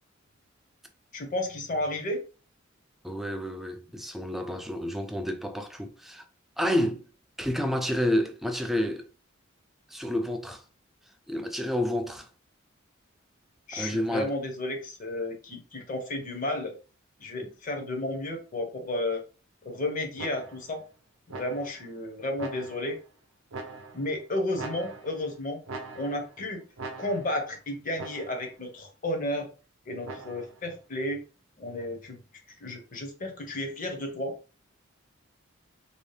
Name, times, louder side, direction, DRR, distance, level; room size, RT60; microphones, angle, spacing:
voice 1, 1.1-2.2 13.7-16.7 17.2-19.2 19.6-20.8 21.3-23.0 23.9-25.6 26.0-26.6 27.0-29.5 29.9-31.2 31.6-32.2 32.6-34.4, left 1 dB, 45° left, 0.7 m, -32 dB
voice 2, 3.0-6.2 6.6-7.1 7.4-9.0 9.9-10.6 11.3-12.3 13.7-14.3, left 1 dB, ahead, 0.3 m, -29 dB
sound 1, 20.2-20.8 21.3-21.9 22.4-23.0 23.5-24.2 24.5-25.3 25.7-26.4 26.8-27.5 28.0-28.6 30.0-30.6, right 3 dB, 80° right, 0.6 m, -42 dB
2.7 x 2.1 x 3.2 m
head